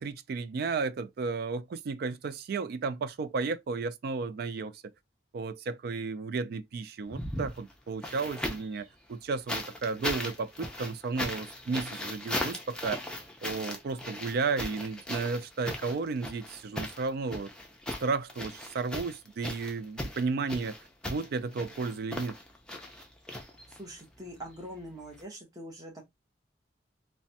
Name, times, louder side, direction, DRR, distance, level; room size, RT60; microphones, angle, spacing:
voice 1, 0.0-4.8 5.3-13.0 13.4-17.5 18.0-20.8 21.0-22.3, right 4 dB, 55° right, 0.3 m, -33 dB
sound 1, 7.0-8.8 9.5-24.0 25.1-25.2, left 1 dB, 5° left, 0.5 m, -38 dB
voice 2, 23.7-26.0, equal, 20° right, 0.9 m, -44 dB
3.2 x 2.1 x 2.7 m
head